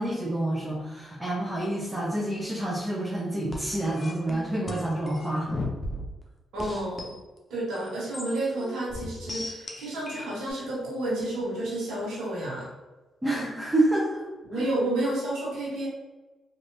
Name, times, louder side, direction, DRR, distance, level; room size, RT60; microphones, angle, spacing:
voice 1, 0.0-5.6 13.2-14.2 14.6-14.7, right 1 dB, 20° right, -5 dB, 0.9 m, -28 dB
sound 1, 3.5-6.2 6.6-7.2 7.7-10.5, left 1 dB, 35° left, 0.7 m, -36 dB
voice 2, 6.5-7.2 7.5-12.7 14.4-15.9, right 1 dB, 80° right, -5 dB, 1.2 m, -30 dB
3.1 x 2.7 x 2.7 m, 1.2 s
supercardioid pair, 50°, 0 cm